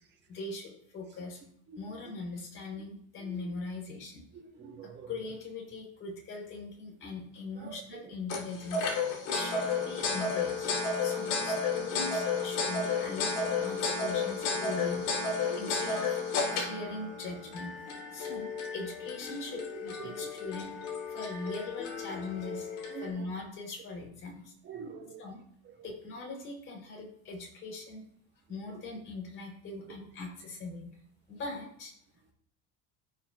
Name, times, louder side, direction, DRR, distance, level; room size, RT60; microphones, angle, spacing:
voice 1, 0.3-1.4 1.8-4.2 5.1-8.9 9.3-10.7 11.0-15.0 15.6-16.2 16.5-17.7 18.1-20.8 21.1-22.7 23.0-24.5 25.2-25.4 25.8-28.0 28.5-30.9 31.3-31.9, left 3 dB, 35° left, -1 dB, 3.9 m, -41 dB
voice 2, 3.2-3.5 4.3-5.3 7.5-8.1 15.4-15.8 19.5-20.3 22.9-23.3 24.6-25.7, right 7 dB, 30° right, 2 dB, 1.6 m, -46 dB
sound 1, 8.3-23.1, left 4 dB, 65° left, 3.3 m, -33 dB
16.0 x 5.9 x 2.4 m, 0.64 s
cardioid pair, 145°, 34 cm